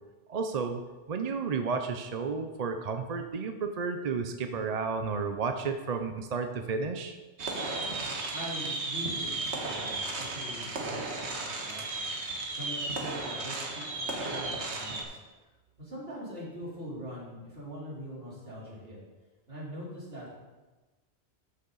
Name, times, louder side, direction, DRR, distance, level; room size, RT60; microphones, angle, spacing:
voice 1, 0.3-0.8 1.1-7.2, right 5 dB, 45° right, 7 dB, 0.6 m, -32 dB
sound 1, 7.4-15.0, right 2 dB, 85° right, 1.6 m, -34 dB
voice 2, 8.3-12.2 12.5-15.2 15.8-19.0 19.5-20.4, equal, 65° right, -8 dB, 3.8 m, -43 dB
12.5 x 6.5 x 4.0 m, 1.2 s
omnidirectional pair, 1.1 m